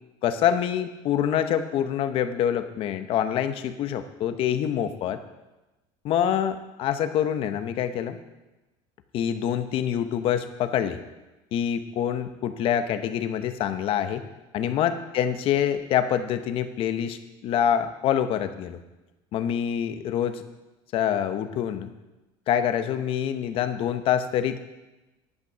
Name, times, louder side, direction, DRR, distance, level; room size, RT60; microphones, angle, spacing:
voice 1, 0.2-5.2 6.0-8.2 9.1-11.0 11.5-14.2 14.5-18.8 19.3-20.4 20.9-21.9 22.5-24.6, left 9 dB, 50° left, 10 dB, 0.9 m, -26 dB
11.0 x 6.0 x 7.3 m, 1.1 s
cardioid pair, 145°, 12 cm